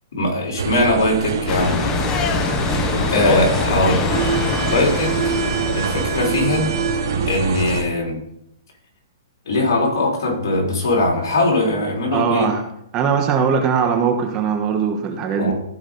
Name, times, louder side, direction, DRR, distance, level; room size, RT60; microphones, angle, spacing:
voice 1, 0.1-1.7 3.1-4.1 4.7-5.3 5.7-6.7 7.3-8.2 9.5-12.5 15.4-15.5, left 2 dB, 75° left, -1 dB, 3.7 m, -20 dB
sound 1, 0.6-7.8, right 5 dB, 80° right, 2.4 m, -24 dB
sound 2, 1.5-6.9, left 5 dB, 20° left, 0.8 m, -24 dB
voice 2, 12.1-12.6 12.9-15.5, right 6 dB, 25° right, 4 dB, 1.2 m, -20 dB
15.0 x 5.0 x 4.0 m, 0.78 s
hypercardioid pair, 150°, 2 cm